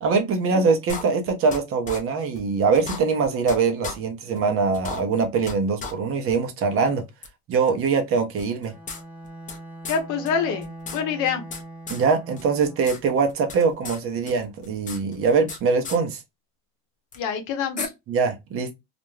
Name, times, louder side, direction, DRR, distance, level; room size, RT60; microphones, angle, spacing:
voice 1, 0.0-7.0 7.5-8.7 11.9-16.2 18.1-18.7, right 5 dB, 40° right, 0.7 m, -23 dB
sound 1, 0.9-1.6 1.9-2.0 2.4-2.5 2.7-3.6 3.8-4.0 4.4-4.5 4.7-5.5 5.8-5.9 6.3-6.4 7.2-7.3 8.4-9.6 9.8-10.0 10.3-10.4 10.6-11.6 11.9-12.0 12.4-13.0 13.2-14.0 14.3-15.6 15.8-16.0 17.1-17.2 17.8-17.9, left 4 dB, 25° left, 0.5 m, -34 dB
Bowed string instrument, 8.7-13.0, right 2 dB, 5° right, 0.8 m, -41 dB
voice 2, 9.9-11.4 17.2-17.9, left 6 dB, 60° left, 0.8 m, -26 dB
2.5 x 2.1 x 3.1 m
supercardioid pair, 125°, 34 cm